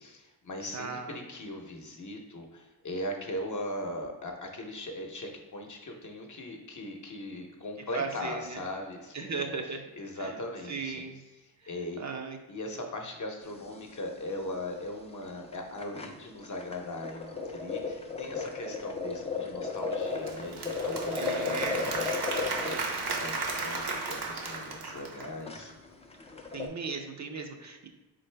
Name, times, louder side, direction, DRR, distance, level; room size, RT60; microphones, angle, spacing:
voice 1, 0.0-11.0 11.3-12.0 12.5-22.9 23.2-25.7, left 1 dB, 45° left, 2 dB, 0.8 m, -39 dB
voice 2, 0.7-1.2 7.9-8.6 9.1-9.9 10.2-10.3 10.7-11.2 12.0-12.4 21.2-21.8 26.5-27.9, right 4 dB, 40° right, 4 dB, 0.6 m, -36 dB
sound 1, 13.4-13.9 14.2-14.3 14.5-14.7 15.2-15.3 15.5-26.7, left 4 dB, 15° left, 0.4 m, -35 dB
Applause / Crowd, 20.0-25.4, right 3 dB, 65° right, 0.9 m, -35 dB
3.9 x 3.7 x 3.3 m, 1.1 s
cardioid pair, 85°, 42 cm